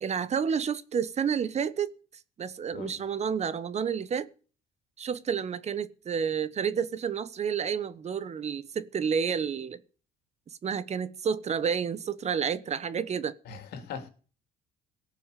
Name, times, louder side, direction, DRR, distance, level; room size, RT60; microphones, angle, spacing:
voice 1, 0.0-1.9 2.4-4.3 5.0-9.8 10.6-13.3, right 7 dB, 40° right, 1.2 m, -30 dB
voice 2, 13.4-14.1, left 6 dB, 70° left, 3.3 m, -40 dB
17.5 x 7.0 x 8.4 m
cardioid pair, 110°, 17 cm